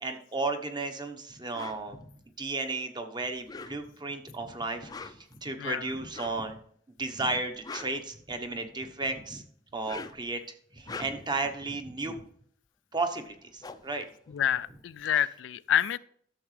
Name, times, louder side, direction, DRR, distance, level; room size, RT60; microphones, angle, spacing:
voice 1, 0.0-2.0 2.4-6.6 7.0-9.4 9.7-10.4 10.7-12.2 12.9-14.1, right 3 dB, 25° right, 7 dB, 1.0 m, -34 dB
sound 1, 1.5-1.8 3.3-4.1 4.8-5.3 6.1-6.5 7.4-8.7 9.7-10.3 10.7-11.4 13.0-13.1 13.3-15.0, left 4 dB, 20° left, 0.5 m, -44 dB
voice 2, 5.6-5.9 14.3-16.0, left 10 dB, 85° left, 17 dB, 0.4 m, -28 dB
12.0 x 7.1 x 3.3 m, 0.62 s
head